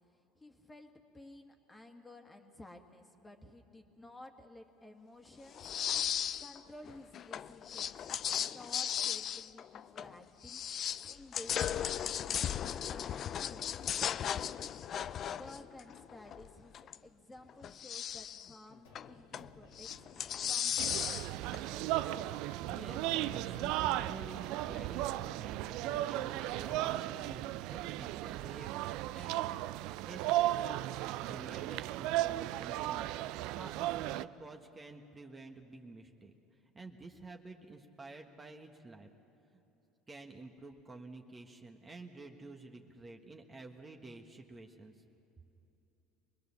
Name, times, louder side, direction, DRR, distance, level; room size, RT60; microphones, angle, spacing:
voice 1, 0.1-5.8 6.4-8.2 8.5-10.6 11.1-14.7 15.2-20.1 20.4-21.4, left 1 dB, 15° left, 4 dB, 2.0 m, -54 dB
sound 1, 5.5-6.6 6.9-10.2 10.4-17.0 17.5-18.5 19.0-19.5 19.8-21.6, left 9 dB, 45° left, 0.4 m, -36 dB
sound 2, 18.8-27.2, left 3 dB, 90° left, 2.5 m, -59 dB
sound 3, 20.8-34.3, right 15 dB, 70° right, 0.4 m, -35 dB
voice 2, 22.6-33.1 33.5-36.3 36.7-39.1 40.1-44.9, right 3 dB, 25° right, 3 dB, 1.5 m, -50 dB
25.0 x 20.0 x 7.1 m, 2.9 s
supercardioid pair, 90°, 0 cm